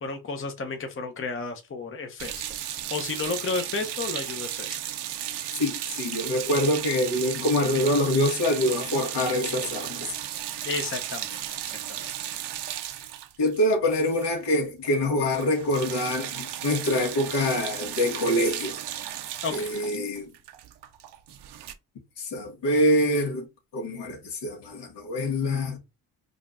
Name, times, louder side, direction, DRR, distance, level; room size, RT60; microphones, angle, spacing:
voice 1, 0.0-4.8 10.6-11.4 11.6-12.1 19.4-19.7, left 4 dB, 30° left, 0.8 m, -32 dB
sound 1, 2.2-14.6 14.8-15.0 15.3-21.7, right 11 dB, 65° right, 0.7 m, -35 dB
voice 2, 5.6-10.1 13.4-18.8 19.5-20.3 22.2-23.4 23.7-25.8, left 1 dB, 65° left, 1.6 m, -25 dB
5.0 x 2.5 x 2.5 m
supercardioid pair, 60°, 43 cm